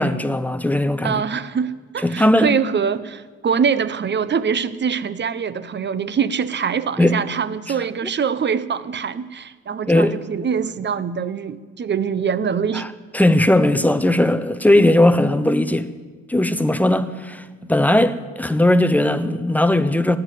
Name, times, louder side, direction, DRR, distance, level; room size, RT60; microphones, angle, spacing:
voice 1, 0.0-1.2 2.0-2.5 7.0-7.2 9.9-10.2 12.7-12.9 13.1-15.9 16.3-20.2, left 1 dB, 5° left, 0.8 m, -18 dB
voice 2, 1.0-12.9, right 6 dB, 35° right, 0.8 m, -24 dB
14.0 x 9.7 x 8.4 m
cardioid pair, 90°, 30 cm